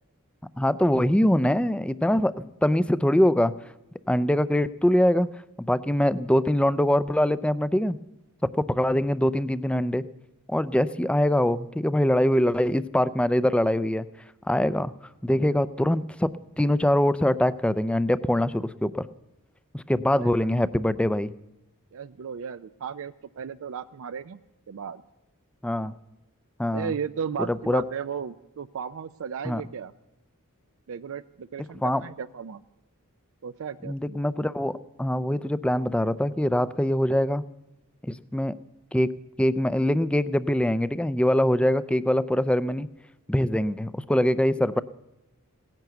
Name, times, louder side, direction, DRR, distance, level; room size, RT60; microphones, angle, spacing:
voice 1, 0.6-3.5 4.1-5.3 5.6-8.0 8.4-10.0 10.5-14.1 14.5-14.9 15.2-16.3 16.6-19.1 19.7-21.3 25.6-25.9 26.6-26.9 27.4-27.8 29.4-29.6 31.8-32.0 33.8-37.4 38.0-38.6 38.9-39.1 39.4-42.9 43.3-44.8, left 1 dB, 5° left, 16 dB, 0.4 m, -23 dB
voice 2, 20.1-20.7 21.9-24.4 24.7-25.0 26.7-29.9 30.9-32.6 33.4-34.2, right 7 dB, 65° right, 11 dB, 0.4 m, -35 dB
17.0 x 10.5 x 8.0 m, 0.98 s
head